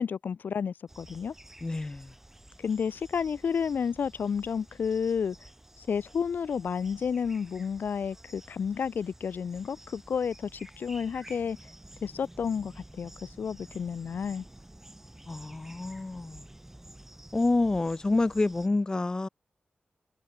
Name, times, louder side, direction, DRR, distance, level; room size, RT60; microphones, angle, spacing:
voice 1, 0.0-1.3 2.6-5.4 5.9-11.6 12.0-13.1 13.4-14.4, left 6 dB, 90° left, 0.5 m, -31 dB
sound 1, 0.9-18.7, right 1 dB, 10° right, 4.6 m, -51 dB
voice 2, 1.6-2.1 15.3-16.4 17.3-19.3, left 2 dB, 25° left, 0.5 m, -28 dB
wide cardioid pair, 140°, 3 cm